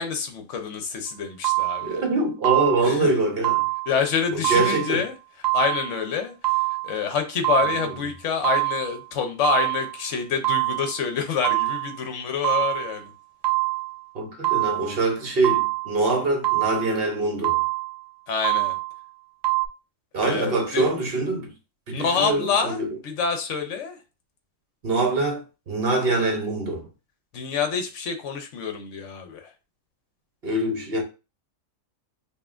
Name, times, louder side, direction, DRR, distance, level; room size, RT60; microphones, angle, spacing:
voice 1, 0.0-2.0 2.8-3.1 3.9-5.1 5.5-6.3 6.8-13.1 18.3-18.8 20.2-20.9 21.9-24.0 27.3-29.5, left 6 dB, 65° left, 1.1 m, -27 dB
sound 1, 1.4-2.0 2.4-3.0 3.4-4.0 4.4-5.0 5.4-6.0 6.4-7.0 7.4-8.0 8.4-9.0 9.4-10.0 10.4-11.0 11.4-12.0 12.4-13.0 13.4-14.0 14.4-15.0 15.4-16.0 16.4-17.0 17.4-18.0 18.4-19.0 19.4-19.7, right 22 dB, 85° right, 1.0 m, -25 dB
voice 2, 1.8-3.7 4.3-5.0 7.8-7.9 14.1-17.6 20.1-21.5 21.9-23.0 24.8-26.9 30.4-31.0, right 2 dB, 50° right, 0.9 m, -24 dB
5.2 x 2.4 x 2.5 m
omnidirectional pair, 1.4 m